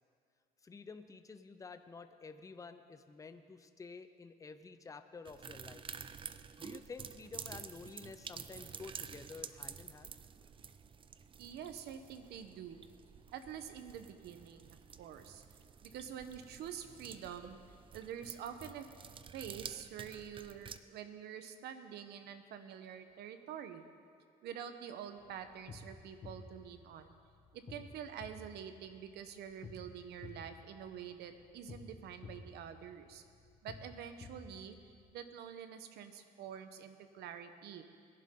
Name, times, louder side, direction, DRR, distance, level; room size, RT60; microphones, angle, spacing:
voice 1, 0.6-5.8 6.6-10.1, left 4 dB, 20° left, 9 dB, 0.7 m, -51 dB
sound 1, 5.2-20.8, right 6 dB, 30° right, 0.5 m, -50 dB
voice 2, 11.4-12.8 13.3-15.4 15.8-17.6 17.9-18.9 19.3-23.8 24.4-27.2 27.5-33.2 33.6-37.8, right 8 dB, 75° right, 9 dB, 1.1 m, -47 dB
sound 2, 25.2-35.1, left 3 dB, 35° left, 1.3 m, -54 dB
21.5 x 11.0 x 3.8 m, 2.3 s
cardioid pair, 110°, 17 cm